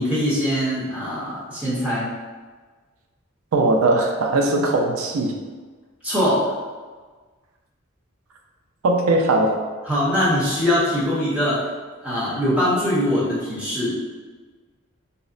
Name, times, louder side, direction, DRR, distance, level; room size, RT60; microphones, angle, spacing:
voice 1, 0.0-2.1 6.0-6.5 9.8-11.7 12.0-14.0, equal, 5° right, -10 dB, 0.8 m, -22 dB
voice 2, 3.5-5.4 8.8-9.6, right 2 dB, 90° right, 2 dB, 0.4 m, -19 dB
3.8 x 2.0 x 2.5 m, 1.4 s
head